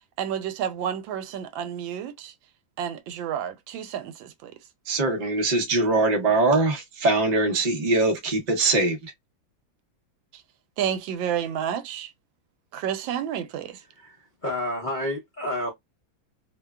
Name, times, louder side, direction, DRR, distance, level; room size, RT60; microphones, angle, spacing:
voice 1, 0.2-2.3 2.8-4.6 10.3-10.4 10.8-12.1 12.7-13.8, right 9 dB, 85° right, 1.3 m, -30 dB
voice 2, 4.9-9.1, right 2 dB, 65° right, 0.4 m, -22 dB
voice 3, 14.0-15.7, left 1 dB, 50° left, 0.5 m, -30 dB
3.1 x 2.2 x 2.2 m
omnidirectional pair, 2.1 m